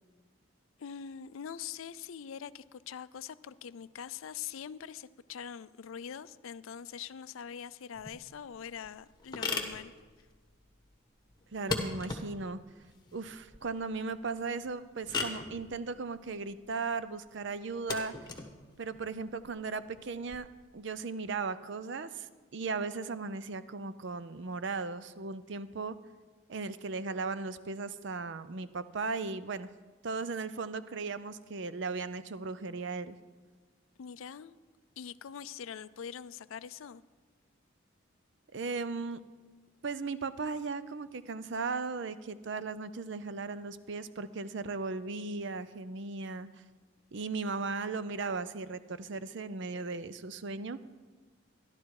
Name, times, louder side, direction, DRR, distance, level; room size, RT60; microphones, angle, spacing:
voice 1, 0.8-9.9 34.0-34.5 35.0-37.0, left 8 dB, 75° left, 16 dB, 0.4 m, -43 dB
sound 1, 7.9-20.3, left 3 dB, 20° left, 1.3 m, -41 dB
voice 2, 11.5-12.6 13.1-18.1 18.8-20.5 20.7-26.0 26.5-29.7 30.0-33.2 38.5-39.2 39.8-46.6 47.1-50.8, right 4 dB, 60° right, 13 dB, 0.5 m, -37 dB
13.5 x 11.5 x 4.8 m, 1.4 s
head